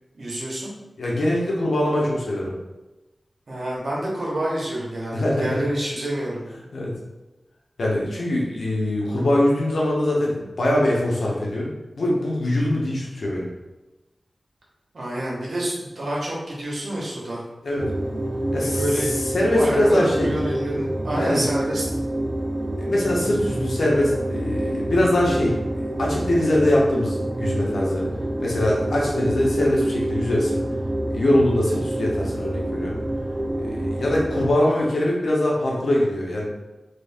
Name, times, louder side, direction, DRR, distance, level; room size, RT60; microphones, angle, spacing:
voice 1, 0.1-0.7 3.5-6.4 14.9-17.4 18.5-19.1 19.5-21.8, right 1 dB, 70° right, -4 dB, 1.1 m, -28 dB
voice 2, 1.0-2.5 5.1-5.6 6.7-6.9 7.8-13.5 17.6-17.9 18.5-18.8 19.3-20.4 21.1-21.4 22.8-28.1 28.4-30.6 31.1-33.0 33.6-36.5, left 1 dB, 85° left, -4 dB, 0.9 m, -22 dB
sound 1, 17.8-34.5, right 1 dB, 40° right, 0.4 m, -27 dB
2.9 x 2.6 x 3.4 m, 1.1 s
cardioid pair, 55°, 0 cm